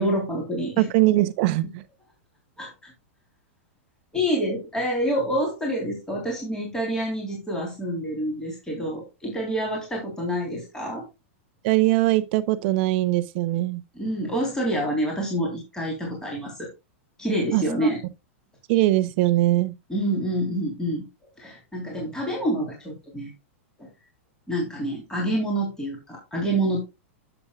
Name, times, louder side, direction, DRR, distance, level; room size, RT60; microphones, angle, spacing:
voice 1, 0.0-0.9 2.6-2.9 4.1-11.0 13.9-16.7 17.2-18.0 19.9-21.0 21.4-23.3 23.8-23.9 24.5-26.8, right 1 dB, 10° left, 3.3 m, -27 dB
voice 2, 0.8-1.8 11.6-13.8 17.5-17.6 18.7-19.7, right 17 dB, 55° right, 0.7 m, -21 dB
11.5 x 7.0 x 2.3 m
hypercardioid pair, 125°, 7 cm